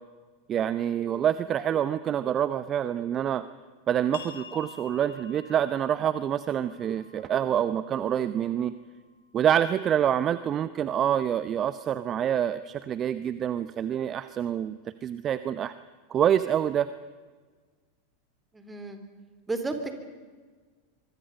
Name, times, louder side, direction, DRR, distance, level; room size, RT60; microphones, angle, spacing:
voice 1, 0.5-3.5 3.9-8.7 9.3-15.7 16.1-16.9, right 9 dB, 30° right, 14 dB, 0.8 m, -26 dB
sound 1, 4.1-9.5, left 5 dB, 70° left, 2.6 m, -50 dB
voice 2, 18.5-19.0 19.5-19.9, right 3 dB, 10° right, 7 dB, 3.5 m, -32 dB
25.0 x 24.5 x 5.4 m, 1.4 s
figure-of-eight pair, 90°, 0 cm